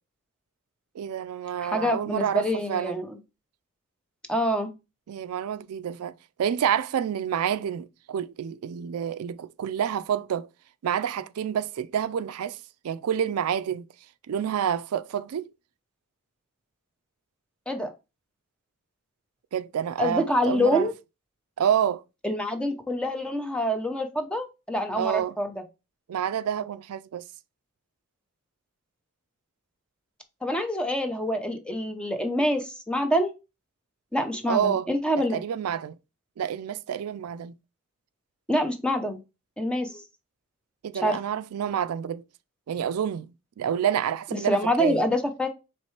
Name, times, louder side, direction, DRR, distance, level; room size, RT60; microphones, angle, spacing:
voice 1, 0.9-3.0 5.1-6.1 6.4-10.5 10.8-12.6 12.8-13.9 14.3-15.5 19.5-20.9 21.6-22.0 24.9-25.4 26.1-27.2 34.5-34.9 35.3-36.0 36.4-37.5 40.8-42.2 42.7-45.1, right 9 dB, 90° right, 0.4 m, -28 dB
voice 2, 1.6-3.2 4.3-4.7 17.7-17.9 20.0-20.9 22.2-25.6 30.4-33.3 34.1-35.4 38.5-39.2 39.6-40.0 41.0-41.2 44.5-45.5, equal, 5° left, 0.7 m, -26 dB
4.3 x 3.2 x 3.1 m
head